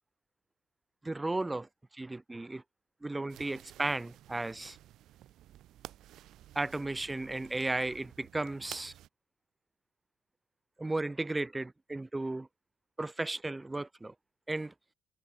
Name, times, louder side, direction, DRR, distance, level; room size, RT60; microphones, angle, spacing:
voice 1, 1.0-1.7 1.9-2.6 3.0-4.8 6.5-8.9 10.8-12.5 13.0-14.1 14.5-14.7, right 2 dB, 15° right, 0.7 m, -34 dB
sound 1, 3.3-9.1, right 13 dB, 80° right, 3.7 m, -53 dB
cardioid pair, 90°, 0 cm